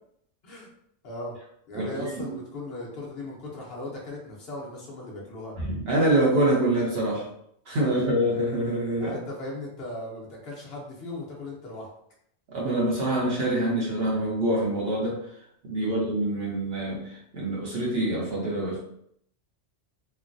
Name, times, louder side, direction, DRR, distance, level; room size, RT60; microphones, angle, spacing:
voice 1, 1.0-1.3 1.7-5.5 7.8-8.1 9.0-11.9 15.7-16.0, left 2 dB, 60° left, -3 dB, 0.9 m, -38 dB
voice 2, 1.7-2.4 5.6-7.3 7.7-9.2 12.5-15.2 15.6-18.8, right 1 dB, 60° right, -4 dB, 1.0 m, -25 dB
3.1 x 2.2 x 2.5 m, 0.70 s
omnidirectional pair, 1.2 m